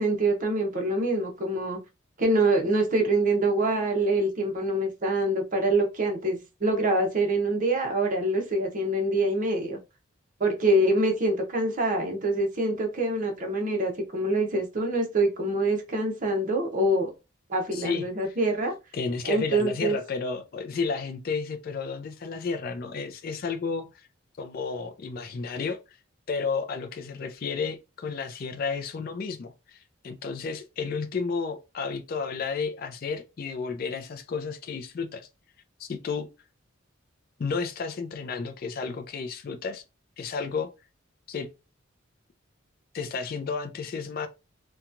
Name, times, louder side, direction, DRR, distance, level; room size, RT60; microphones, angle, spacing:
voice 1, 0.0-1.8 2.2-9.8 10.4-17.1 17.5-18.7 19.3-20.0, right 1 dB, 40° right, 0.7 m, -25 dB
voice 2, 17.7-18.3 18.9-24.1 24.4-26.0 26.3-35.3 35.8-36.3 37.4-39.8 40.2-40.7 41.3-41.5 42.9-44.3, left 5 dB, 45° left, 0.3 m, -32 dB
2.8 x 2.2 x 2.4 m
head